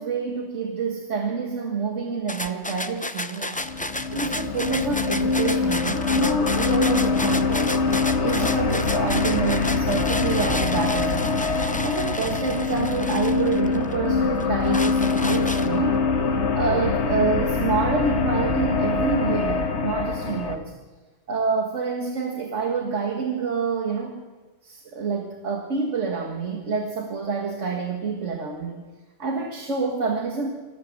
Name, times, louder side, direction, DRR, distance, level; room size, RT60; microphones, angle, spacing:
voice 1, 0.0-3.6 4.1-7.8 8.2-11.5 11.8-16.0 16.6-20.7 21.3-24.2 24.6-28.8 29.2-30.5, right 4 dB, 85° right, 2 dB, 2.0 m, -27 dB
sound 1, 2.3-14.0 14.4-16.0, left 1 dB, 10° left, 0.6 m, -32 dB
sound 2, 3.6-20.6, left 4 dB, 70° left, 1.6 m, -24 dB
26.0 x 15.0 x 7.4 m, 1.3 s
omnidirectional pair, 1.2 m